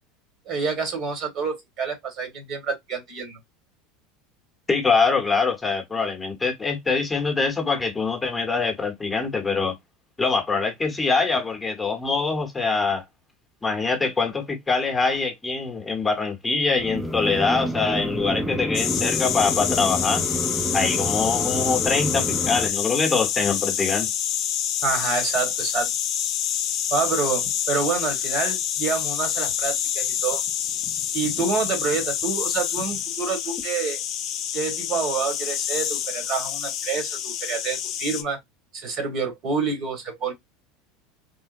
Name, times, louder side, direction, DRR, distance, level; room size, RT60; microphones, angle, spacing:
voice 1, 0.4-3.4 24.8-25.9 26.9-30.4 31.1-34.0 34.5-38.4 38.7-40.3, right 5 dB, 50° right, 1.6 m, -27 dB
voice 2, 4.7-9.7 10.2-13.0 13.6-20.2 20.7-24.1, left 4 dB, 15° left, 1.0 m, -24 dB
sound 1, 16.8-22.7, right 1 dB, ahead, 0.5 m, -29 dB
sound 2, 18.7-38.2, left 10 dB, 55° left, 0.5 m, -27 dB
3.7 x 2.2 x 2.5 m
hypercardioid pair, 95°, 0 cm